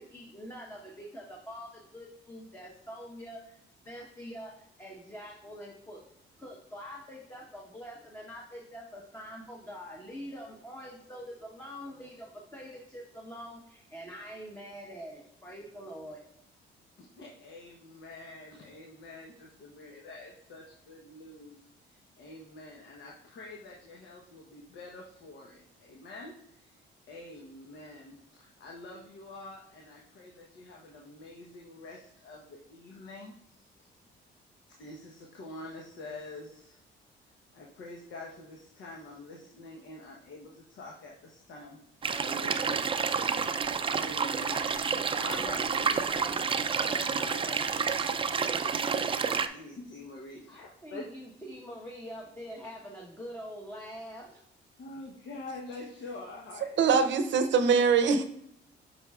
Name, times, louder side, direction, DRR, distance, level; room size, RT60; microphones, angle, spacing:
voice 1, 0.0-3.6 3.8-6.0 6.4-16.2 50.5-54.4, equal, 10° left, -2 dB, 1.1 m, -44 dB
voice 2, 17.0-21.6 21.8-26.7 27.1-33.7 34.8-36.8 37.5-41.8 42.1-43.3 43.9-47.6 47.9-51.1 54.8-56.7, left 2 dB, 70° left, -1 dB, 1.1 m, -46 dB
sound 1, 42.0-49.5, right 5 dB, 25° right, 0.4 m, -29 dB
voice 3, 56.6-58.2, right 5 dB, 70° right, 10 dB, 0.7 m, -23 dB
7.6 x 5.5 x 2.4 m, 0.74 s
cardioid pair, 90°, 20 cm